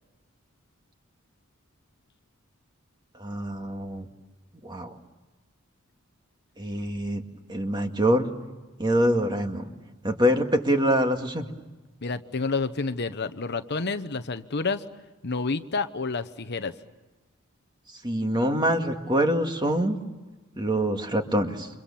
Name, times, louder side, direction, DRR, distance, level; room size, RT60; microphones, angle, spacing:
voice 1, 3.2-4.1 4.6-4.9 6.6-7.2 7.5-8.3 8.8-9.7 10.0-11.5 18.0-20.0 20.6-21.7, equal, 20° right, 4 dB, 2.2 m, -25 dB
voice 2, 12.0-14.8 15.2-16.7, left 4 dB, 50° left, 10 dB, 1.0 m, -29 dB
29.5 x 25.5 x 7.2 m, 1.2 s
head